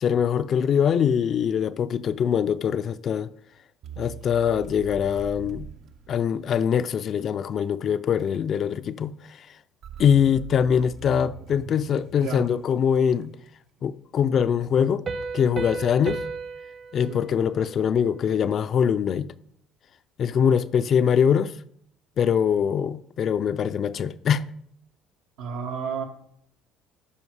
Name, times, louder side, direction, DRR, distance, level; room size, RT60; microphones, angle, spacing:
voice 1, 0.0-3.3 4.0-5.7 6.1-9.1 10.0-13.3 13.8-15.0 15.3-16.2 16.9-19.3 20.2-21.5 22.2-24.5, left 8 dB, 45° left, 0.4 m, -23 dB
sound 1, 3.8-6.8 9.8-13.3, right 8 dB, 60° right, 0.7 m, -42 dB
Piano, 15.1-18.5, right 4 dB, 40° right, 1.0 m, -35 dB
voice 2, 25.4-26.0, right 6 dB, 85° right, 1.7 m, -32 dB
12.5 x 5.1 x 4.8 m
cardioid pair, 120°, 0 cm